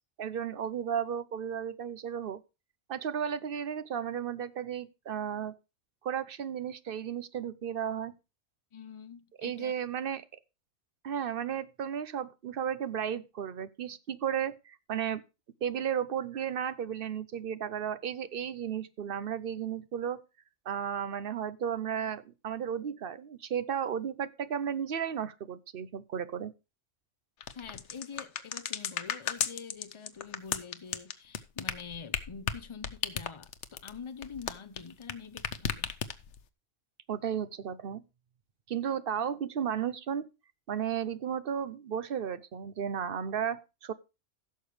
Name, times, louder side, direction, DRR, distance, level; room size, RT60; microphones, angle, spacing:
voice 1, 0.2-2.4 2.9-5.6 6.0-8.1 9.4-10.2 11.0-15.2 15.6-20.2 20.7-26.5 37.1-38.0 38.7-40.3 40.7-43.9, right 8 dB, 55° right, 0.9 m, -34 dB
voice 2, 8.7-9.7 27.5-35.9, left 6 dB, 30° left, 0.7 m, -46 dB
sound 1, 27.4-35.1 35.4-36.4, left 8 dB, 80° left, 1.1 m, -34 dB
16.0 x 6.8 x 3.2 m
omnidirectional pair, 1.2 m